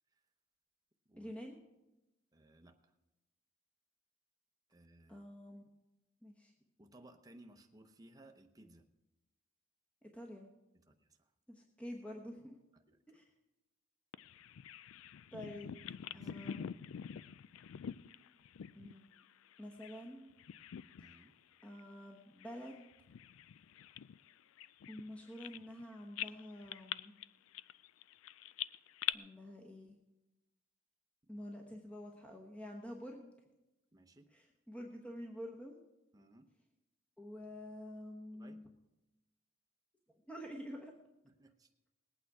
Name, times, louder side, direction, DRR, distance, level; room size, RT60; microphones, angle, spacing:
voice 1, 1.2-1.6 5.1-5.7 6.2-6.5 10.0-10.5 11.5-12.6 13.1-13.2 15.3-15.8 16.1-16.7 18.7-19.1 19.6-20.3 21.6-22.8 24.9-27.1 29.1-30.0 31.3-33.3 34.3-35.8 37.2-38.6 40.3-40.9, equal, 5° left, 1 dB, 1.0 m, -48 dB
voice 2, 2.3-3.0 4.7-5.2 6.8-8.9 10.9-11.3 12.9-13.2 15.4-15.7 16.1-16.3 21.0-21.3 31.3-31.4 33.9-34.3 36.1-36.5 38.3-38.6 41.2-41.7, right 1 dB, 20° right, 5 dB, 0.8 m, -61 dB
Bird vocalization bird call bird song, 14.1-20.1 20.4-21.3 21.6-21.8 22.4-25.8 26.2-29.1, left 10 dB, 75° left, 0.3 m, -45 dB
19.5 x 8.7 x 4.7 m, 0.98 s
head